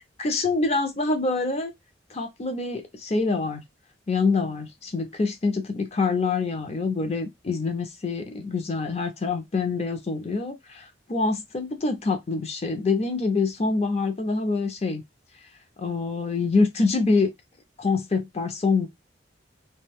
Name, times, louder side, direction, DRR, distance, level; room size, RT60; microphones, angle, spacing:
voice 1, 0.2-1.7 2.1-3.6 4.1-15.0 15.8-17.3 17.8-18.9, left 3 dB, 35° left, 0.5 m, -25 dB
2.5 x 2.2 x 3.4 m
head